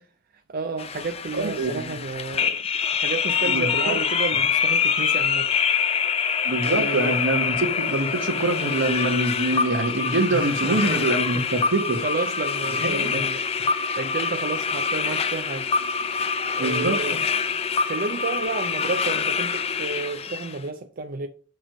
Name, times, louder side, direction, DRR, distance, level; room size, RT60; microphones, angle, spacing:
voice 1, 0.5-2.6 2.9-7.2 10.3-11.0 11.3-11.5 12.0-13.4 14.0-17.2 17.9-21.3, right 4 dB, 50° right, 0.4 m, -32 dB
sound 1, 0.8-20.6, left 6 dB, 30° left, 0.3 m, -25 dB
voice 2, 1.3-2.0 3.4-4.0 6.4-12.0 12.8-13.2 16.6-17.0, right 2 dB, 85° right, 1.1 m, -25 dB
6.1 x 3.1 x 5.1 m
head